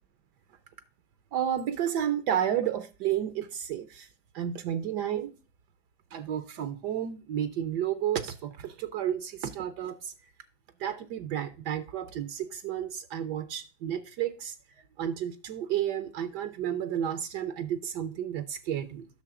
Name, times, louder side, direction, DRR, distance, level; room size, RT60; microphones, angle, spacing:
voice 1, 1.3-4.1 4.3-5.3 6.1-10.1 10.8-14.6 15.0-19.1, right 10 dB, 70° right, 1.2 m, -31 dB
10.0 x 6.5 x 3.6 m
omnidirectional pair, 2.0 m